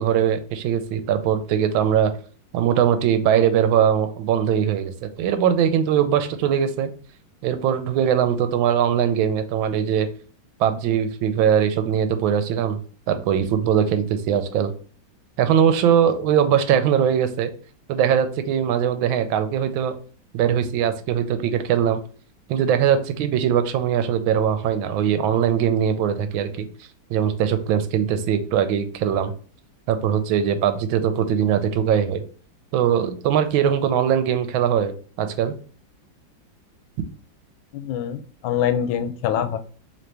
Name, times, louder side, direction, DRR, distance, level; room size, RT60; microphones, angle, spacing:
voice 1, 0.0-2.1 2.5-6.9 7.4-10.1 10.6-12.8 13.1-14.7 15.4-17.5 17.9-20.0 20.3-22.0 22.5-26.7 27.1-29.3 29.9-32.2 32.7-35.5, right 9 dB, 85° right, 9 dB, 1.4 m, -21 dB
voice 2, 37.7-39.6, left 9 dB, 80° left, 9 dB, 1.3 m, -24 dB
4.1 x 3.2 x 3.3 m, 0.41 s
omnidirectional pair, 2.1 m